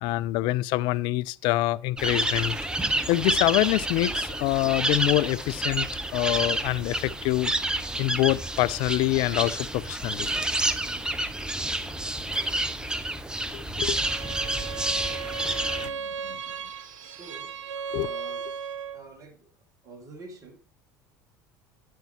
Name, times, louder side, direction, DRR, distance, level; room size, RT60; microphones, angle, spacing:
voice 1, 0.0-2.7 3.1-7.5 8.0-10.3 13.5-14.0 15.8-16.4 17.9-18.1, left 18 dB, 50° left, 0.4 m, -26 dB
sound 1, 2.0-15.9, right 1 dB, 10° right, 0.7 m, -29 dB
Bowed string instrument, 13.9-19.1, right 6 dB, 60° right, 0.7 m, -36 dB
voice 2, 17.0-17.6 17.9-18.5 18.9-19.5 19.8-20.6, right 2 dB, 35° right, 2.1 m, -47 dB
9.3 x 9.1 x 3.0 m
figure-of-eight pair, 70°, 10 cm